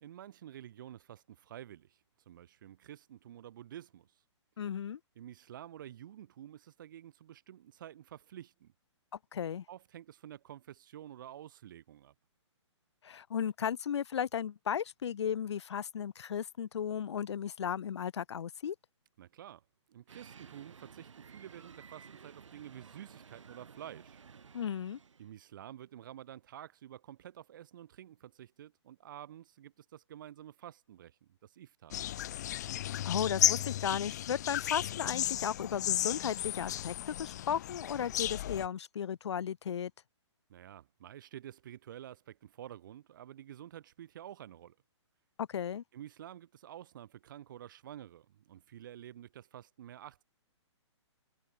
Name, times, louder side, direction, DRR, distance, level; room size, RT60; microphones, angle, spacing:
voice 1, 0.0-2.0 2.3-4.1 5.2-8.7 9.7-12.1 19.2-19.6 19.9-24.2 25.2-32.0 40.5-44.8 45.9-50.2, right 11 dB, 40° right, 2.0 m, -50 dB
voice 2, 4.6-5.0 9.3-9.6 13.0-18.7 24.5-25.0 32.9-39.9 45.4-45.8, left 8 dB, 65° left, 0.7 m, -35 dB
sound 1, 20.1-25.3, right 6 dB, 85° right, 5.2 m, -54 dB
sound 2, 31.9-38.7, left 12 dB, 35° left, 0.9 m, -34 dB
hypercardioid pair, 165°, 16 cm